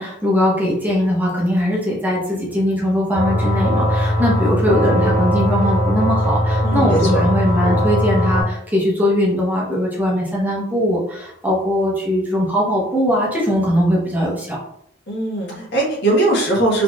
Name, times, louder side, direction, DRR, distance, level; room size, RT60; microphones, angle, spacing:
voice 1, 0.0-14.6, equal, 10° right, -4 dB, 0.7 m, -20 dB
sound 1, 3.1-8.4, equal, 40° right, 0.8 m, -19 dB
voice 2, 6.6-7.3 15.1-16.8, right 2 dB, 55° left, -3 dB, 1.3 m, -19 dB
3.9 x 2.9 x 2.3 m, 0.72 s
head